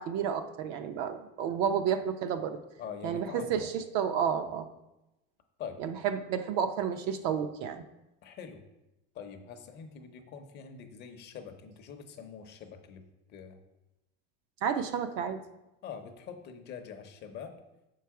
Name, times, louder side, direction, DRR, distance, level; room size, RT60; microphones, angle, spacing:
voice 1, 0.0-2.6 3.0-4.7 5.8-7.8 14.6-15.4, right 8 dB, 55° right, 8 dB, 0.6 m, -31 dB
voice 2, 2.8-3.7 5.6-5.8 8.2-8.6 9.1-13.0 13.3-13.6 15.8-17.6, left 7 dB, 35° left, 6 dB, 0.7 m, -44 dB
6.7 x 4.7 x 4.6 m, 0.94 s
cardioid pair, 175°, 30 cm